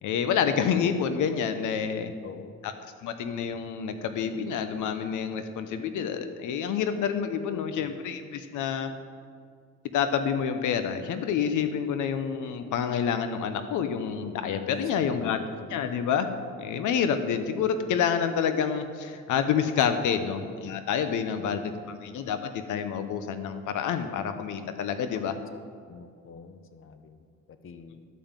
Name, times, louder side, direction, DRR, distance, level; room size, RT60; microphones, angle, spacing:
voice 1, 0.0-2.1 2.6-2.7 3.0-8.9 9.9-15.4 15.7-16.3 16.6-25.3, left 7 dB, 80° left, 9 dB, 0.9 m, -28 dB
voice 2, 7.5-7.9 14.6-15.7 25.1-25.4 25.9-28.1, left 5 dB, 45° left, 9 dB, 0.7 m, -45 dB
12.5 x 5.2 x 7.3 m, 2.2 s
cardioid pair, 90°, 30 cm